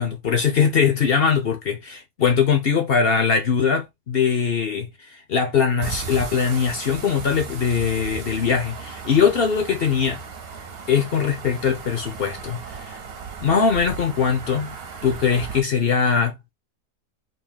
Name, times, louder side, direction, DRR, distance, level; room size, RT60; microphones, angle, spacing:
voice 1, 0.0-10.2 10.9-13.0 13.4-14.7 15.0-16.5, left 6 dB, 55° left, 0.7 m, -21 dB
sound 1, 5.8-15.6, right 6 dB, 55° right, 0.7 m, -36 dB
2.9 x 2.6 x 3.8 m
omnidirectional pair, 1.7 m